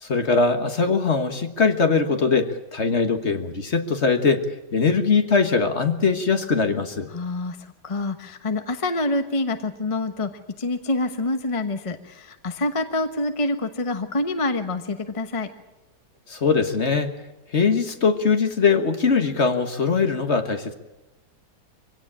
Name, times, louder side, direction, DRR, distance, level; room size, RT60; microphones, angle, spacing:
voice 1, 0.0-4.4 4.7-7.1 16.3-17.1 17.5-20.7, left 4 dB, 45° left, 7 dB, 1.6 m, -21 dB
voice 2, 7.1-10.3 10.6-15.5, left 2 dB, 20° left, 7 dB, 1.1 m, -26 dB
24.0 x 17.0 x 8.7 m, 1.0 s
omnidirectional pair, 1.8 m